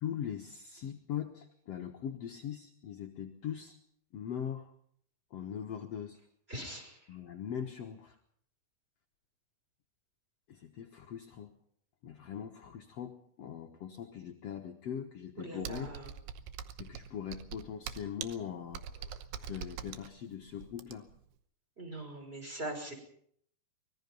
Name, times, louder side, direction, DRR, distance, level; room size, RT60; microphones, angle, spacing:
voice 1, 0.0-3.8 4.1-4.7 5.3-6.2 7.1-8.2 10.5-11.5 12.0-15.9 16.8-21.1, left 9 dB, 65° left, 3 dB, 1.6 m, -41 dB
voice 2, 6.5-7.2 15.4-16.1 21.8-22.9, right 1 dB, 15° right, 4 dB, 5.6 m, -42 dB
Computer keyboard, 15.6-21.2, right 8 dB, 85° right, 3.1 m, -43 dB
24.5 x 21.0 x 5.4 m, 0.66 s
omnidirectional pair, 4.7 m